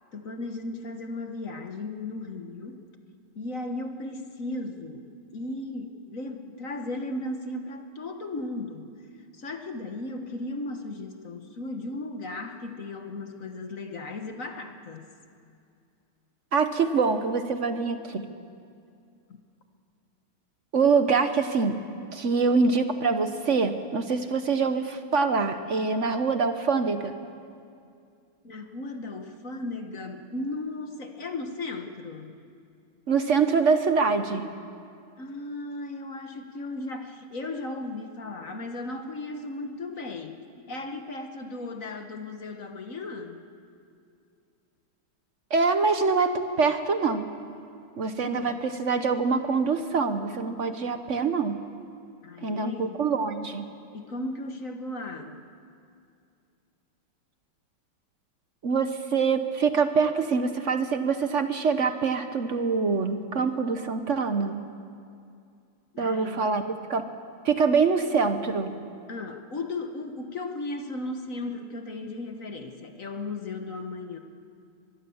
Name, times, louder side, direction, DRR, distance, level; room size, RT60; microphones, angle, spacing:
voice 1, 0.1-2.8 3.3-15.1 19.3-19.4 28.4-32.4 35.2-43.4 48.2-48.6 52.2-53.1 53.9-55.4 65.9-66.5 69.1-74.2, left 2 dB, 45° left, 5 dB, 1.4 m, -36 dB
voice 2, 16.5-18.2 20.7-21.8 22.1-27.1 33.1-34.5 45.5-47.3 48.0-51.6 52.4-53.6 58.6-64.6 66.0-67.0 67.4-68.8, right 4 dB, 50° right, 9 dB, 0.9 m, -25 dB
23.5 x 22.0 x 7.1 m, 2.4 s
omnidirectional pair, 2.4 m